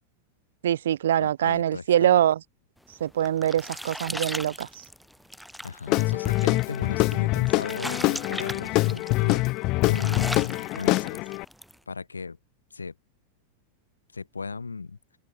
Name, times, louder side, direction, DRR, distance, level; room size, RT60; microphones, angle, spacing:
voice 1, 0.6-2.4 3.0-4.7, right 11 dB, 60° right, 3.5 m, -23 dB
voice 2, 1.2-2.1 5.6-9.4 9.8-11.3 11.9-12.4 12.7-12.9 14.1-15.0, left 4 dB, 75° left, 5.4 m, -37 dB
sound 1, 2.9-11.8, equal, ahead, 3.4 m, -39 dB
Guitar / Drum, 5.9-11.4, left 21 dB, 40° left, 3.4 m, -24 dB
open air
figure-of-eight pair, 90°, 0 cm